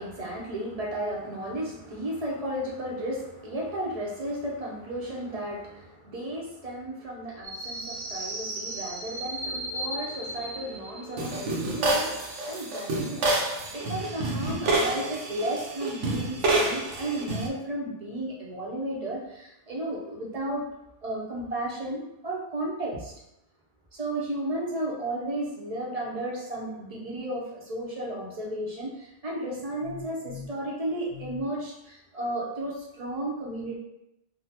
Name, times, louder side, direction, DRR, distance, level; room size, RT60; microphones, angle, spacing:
voice 1, 0.0-13.3 13.7-20.7 21.0-23.1 23.9-33.8, right 1 dB, 40° right, -3 dB, 0.6 m, -34 dB
sound 1, 7.4-17.5, right 2 dB, 80° right, 0.9 m, -29 dB
3.6 x 2.0 x 2.7 m, 0.86 s
omnidirectional pair, 1.2 m